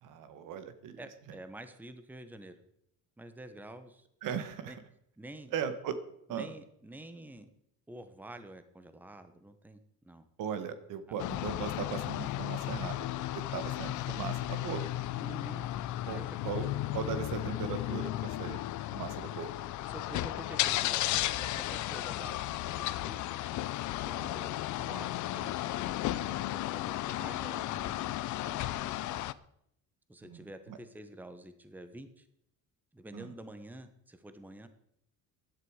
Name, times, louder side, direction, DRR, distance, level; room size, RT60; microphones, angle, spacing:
voice 1, 0.0-1.0 4.2-4.7 5.5-6.0 6.3-6.5 10.4-13.1 13.3-14.8 16.1-16.2 16.4-16.7 16.9-18.6 18.9-19.5 30.2-30.4 30.7-30.8 33.1-33.3, right 7 dB, 70° right, 11 dB, 1.7 m, -38 dB
voice 2, 1.0-2.6 3.2-4.1 4.7-4.8 5.2-5.5 6.3-7.5 7.9-10.2 15.2-15.6 16.1-16.7 19.8-23.3 24.0-28.7 29.1-29.2 30.1-32.3 32.9-34.7, right 1 dB, 5° right, 10 dB, 1.1 m, -48 dB
sound 1, 11.2-29.3, left 15 dB, 60° left, 0.6 m, -34 dB
15.5 x 11.5 x 4.9 m, 0.74 s
cardioid pair, 130°, 33 cm